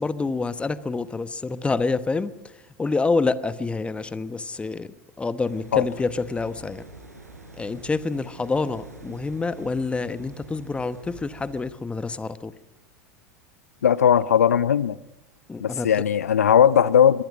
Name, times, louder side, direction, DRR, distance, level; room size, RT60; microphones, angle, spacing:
voice 1, 0.0-6.8 7.6-12.5 15.5-15.9, left 3 dB, 15° left, 14 dB, 1.1 m, -27 dB
sound 1, 5.4-11.6, right 2 dB, 90° right, 5.3 m, -45 dB
voice 2, 13.8-15.0 15.6-17.2, left 9 dB, 75° left, 18 dB, 0.6 m, -18 dB
23.5 x 20.0 x 6.3 m, 1.0 s
figure-of-eight pair, 85°, 8 cm